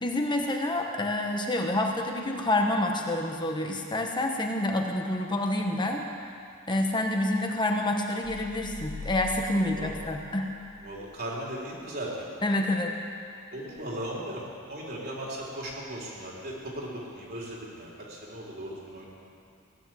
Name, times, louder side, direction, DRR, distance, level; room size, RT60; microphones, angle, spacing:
voice 1, 0.0-6.1 6.7-10.6 12.4-12.9, left 1 dB, 20° left, 2 dB, 1.1 m, -28 dB
sound 1, 8.2-10.9, left 3 dB, 45° left, 0.8 m, -42 dB
voice 2, 9.5-9.9 10.8-12.1 13.5-19.1, right 1 dB, 45° right, -4 dB, 3.7 m, -37 dB
17.0 x 9.9 x 7.6 m, 2.4 s
head